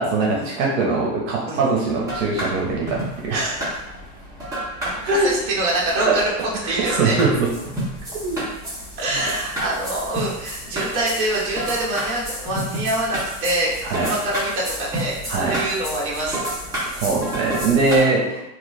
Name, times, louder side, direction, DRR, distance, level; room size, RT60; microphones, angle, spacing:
voice 1, 0.0-3.5 5.0-5.3 6.1-6.2 6.7-7.5 8.2-8.5 13.8-14.1 15.3-15.6 16.9-18.4, right 3 dB, 60° right, -2 dB, 0.9 m, -21 dB
sound 1, 2.0-18.0, right 1 dB, 10° right, 0.6 m, -31 dB
voice 2, 5.2-7.2 9.0-16.5 17.9-18.4, right 1 dB, 30° right, -5 dB, 0.9 m, -25 dB
3.0 x 2.3 x 3.1 m, 0.88 s
supercardioid pair, 145°, 43 cm